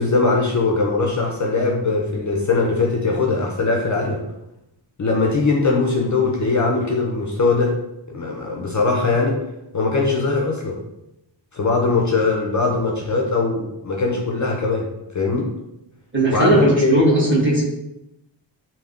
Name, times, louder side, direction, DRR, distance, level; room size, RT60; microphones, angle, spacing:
voice 1, 0.0-4.2 5.0-7.7 8.1-9.4 9.7-10.8 11.5-14.9 15.1-15.5 16.3-16.9, left 3 dB, 40° left, -1 dB, 0.4 m, -20 dB
voice 2, 16.1-17.6, right 1 dB, 25° right, -6 dB, 1.1 m, -17 dB
3.4 x 2.1 x 2.4 m, 0.89 s
cardioid pair, 55°, 46 cm